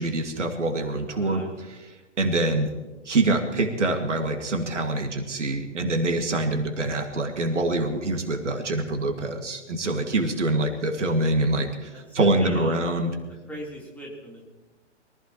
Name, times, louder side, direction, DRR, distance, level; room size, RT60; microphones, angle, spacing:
voice 1, 0.0-1.4 2.2-2.7 3.1-13.1, right 2 dB, 75° right, 4 dB, 2.3 m, -25 dB
voice 2, 1.1-1.5 10.7-11.2 11.9-12.9 13.5-14.4, right 1 dB, 5° left, -3 dB, 3.7 m, -39 dB
23.5 x 15.0 x 3.1 m, 1.1 s
figure-of-eight pair, 120°, 36 cm